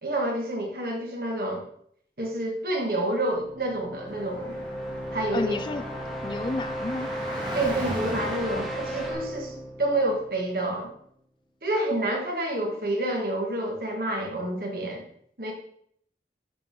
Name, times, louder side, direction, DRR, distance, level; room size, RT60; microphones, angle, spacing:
voice 1, 0.0-1.6 2.2-4.6 5.1-5.6 7.5-10.9 11.6-15.0 15.4-15.5, right 1 dB, 55° right, 0 dB, 1.8 m, -28 dB
sound 1, 3.3-11.0, right 1 dB, ahead, 0.9 m, -36 dB
Car / Traffic noise roadway noise, 4.1-9.1, equal, 25° right, 1.7 m, -37 dB
voice 2, 5.3-5.8 6.2-7.1, left 2 dB, 25° left, 11 dB, 0.3 m, -30 dB
11.5 x 4.8 x 3.7 m, 0.68 s
head